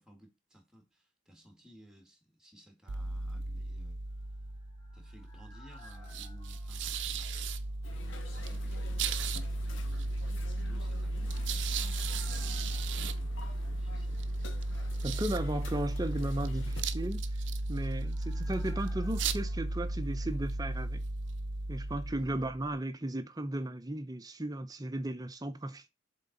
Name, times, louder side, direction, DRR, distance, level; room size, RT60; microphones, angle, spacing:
voice 1, 0.0-4.0 4.9-10.1 10.4-14.2 22.1-22.3, equal, 5° right, 1.8 m, -58 dB
sound 1, 2.9-22.8, right 2 dB, 70° right, 0.6 m, -35 dB
sound 2, 4.2-8.1 8.3-8.4 10.8-14.5 14.8-14.9 17.2-21.0 21.3-21.4, left 2 dB, 20° left, 2.1 m, -60 dB
sound 3, 7.8-16.8, left 2 dB, 85° left, 1.4 m, -50 dB
voice 2, 15.0-17.2 17.7-21.0 21.7-25.9, right 1 dB, 20° right, 0.7 m, -35 dB
7.4 x 3.8 x 3.9 m
head